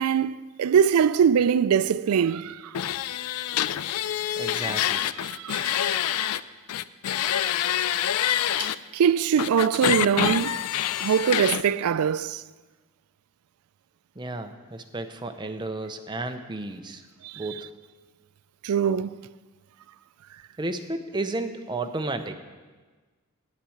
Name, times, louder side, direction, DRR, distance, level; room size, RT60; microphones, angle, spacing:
voice 1, 0.0-2.7 5.3-5.9 8.6-10.6 11.0-12.4 17.2-17.4 18.6-19.2, right 7 dB, 85° right, 0.3 m, -23 dB
sound 1, 2.7-6.4 6.7-8.8 9.4-11.6, left 10 dB, 90° left, 0.4 m, -26 dB
voice 2, 4.4-5.1 14.2-17.0 17.4-17.7 20.6-22.3, right 2 dB, 20° right, 0.6 m, -32 dB
9.1 x 7.4 x 8.6 m
head